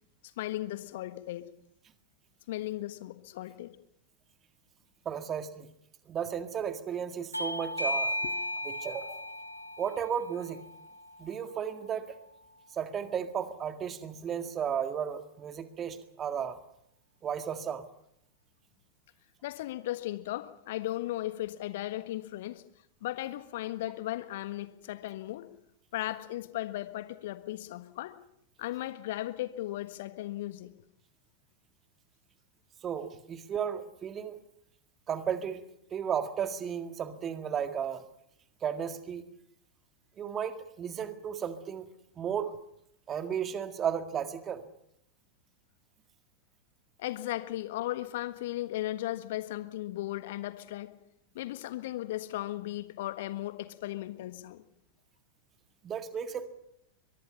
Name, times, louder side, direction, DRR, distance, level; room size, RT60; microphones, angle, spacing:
voice 1, 0.4-1.5 2.5-3.8 8.2-8.3 9.1-9.2 19.4-22.6 23.0-25.5 25.9-28.2 28.6-30.7 47.0-50.9 51.3-54.6, left 15 dB, 55° left, 1.5 m, -36 dB
voice 2, 5.1-5.7 6.1-8.1 8.6-9.3 9.8-10.6 11.2-12.2 12.7-16.6 17.2-17.9 32.8-34.4 35.1-35.6 35.9-38.0 38.6-39.2 40.2-41.9 42.2-42.6 43.1-44.6 55.8-56.5, right 8 dB, 25° right, 1.9 m, -34 dB
Bell / Doorbell, 7.3-12.5, left 1 dB, 90° left, 1.5 m, -36 dB
23.0 x 22.5 x 5.7 m
figure-of-eight pair, 90°, 0 cm